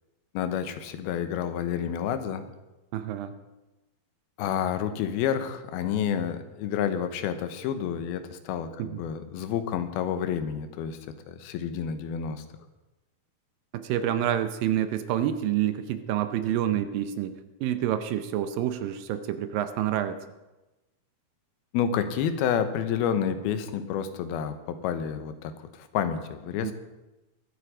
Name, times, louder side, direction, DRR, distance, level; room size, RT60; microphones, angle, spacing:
voice 1, 0.3-2.5 4.4-11.0 11.3-12.4 21.7-26.7, left 8 dB, 85° left, 10 dB, 2.8 m, -29 dB
voice 2, 2.9-3.4 8.8-9.0 13.7-17.3 17.6-20.2 26.6-26.7, right 11 dB, 75° right, 10 dB, 2.3 m, -28 dB
23.0 x 8.3 x 5.0 m, 1.0 s
omnidirectional pair, 4.4 m